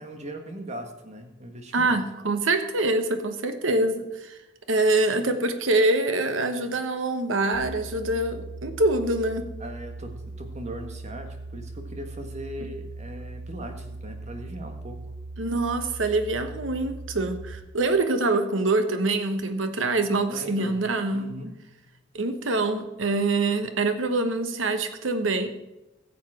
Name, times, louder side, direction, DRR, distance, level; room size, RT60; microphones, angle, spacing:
voice 1, 0.0-2.0 9.6-15.0 20.2-20.8 21.1-21.5, right 1 dB, 35° right, 5 dB, 1.5 m, -39 dB
voice 2, 1.7-4.4 4.7-9.5 15.4-21.3 22.1-25.5, right 2 dB, 90° right, 8 dB, 1.1 m, -25 dB
sound 1, 7.5-17.5, right 2 dB, 40° left, 2.6 m, -39 dB
15.5 x 7.2 x 4.9 m, 0.98 s
head